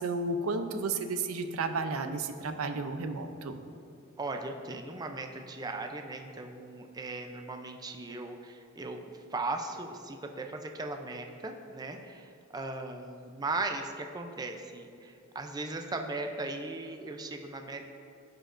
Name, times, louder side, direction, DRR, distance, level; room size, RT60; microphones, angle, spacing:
voice 1, 0.0-3.6, right 3 dB, 85° right, 8 dB, 0.5 m, -32 dB
voice 2, 4.2-9.0 9.3-17.8, right 2 dB, 20° right, 4 dB, 0.4 m, -38 dB
14.5 x 5.1 x 2.5 m, 2.5 s
head